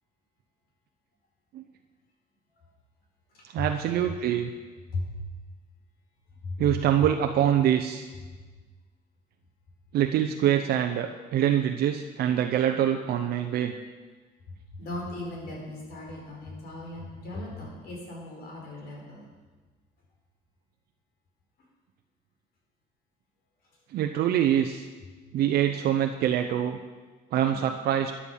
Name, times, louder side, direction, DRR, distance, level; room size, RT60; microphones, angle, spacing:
voice 1, 3.5-4.5 6.6-8.0 9.9-13.7 23.9-24.9 25.3-26.8 27.3-28.1, right 10 dB, 70° right, 5 dB, 0.7 m, -25 dB
voice 2, 14.8-19.2 27.5-27.6, left 2 dB, 70° left, -2 dB, 4.8 m, -37 dB
13.0 x 10.0 x 5.6 m, 1.3 s
cardioid pair, 110°, 17 cm